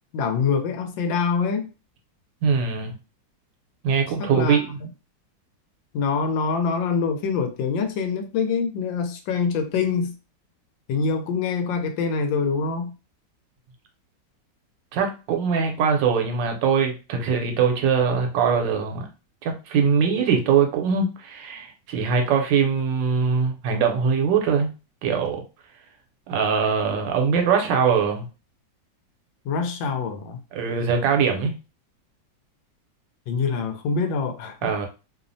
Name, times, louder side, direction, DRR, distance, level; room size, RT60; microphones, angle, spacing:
voice 1, 0.1-1.7 4.2-4.9 5.9-10.1 10.9-12.9 29.4-30.4 33.3-34.7, left 5 dB, 85° left, 1.3 m, -25 dB
voice 2, 2.4-2.9 3.8-4.8 14.9-19.1 19.4-24.7 25.0-25.4 26.3-28.2 30.5-31.5 34.6-34.9, right 6 dB, 75° right, 1.3 m, -22 dB
3.2 x 2.0 x 2.5 m
omnidirectional pair, 2.0 m